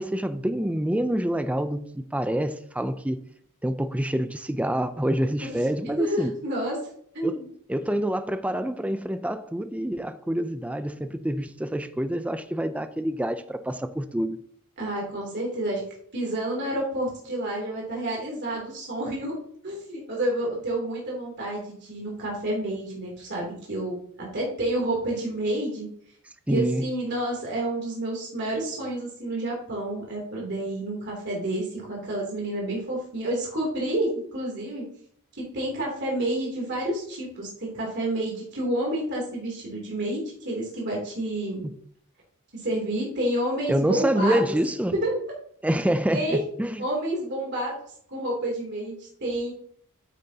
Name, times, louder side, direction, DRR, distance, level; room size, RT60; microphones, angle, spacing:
voice 1, 0.0-3.2 3.6-6.3 7.2-7.3 7.7-14.4 26.5-26.8 41.6-41.8 43.7-44.9 45.6-46.8, right 1 dB, 5° right, 0.4 m, -27 dB
voice 2, 6.0-6.8 7.1-7.5 14.8-15.8 16.1-19.4 19.6-25.9 26.5-34.8 35.4-41.6 42.5-44.4 44.9-45.1 46.1-46.4 46.8-47.8 48.1-49.5, right 1 dB, 50° right, 3.0 m, -29 dB
9.3 x 8.9 x 2.8 m
head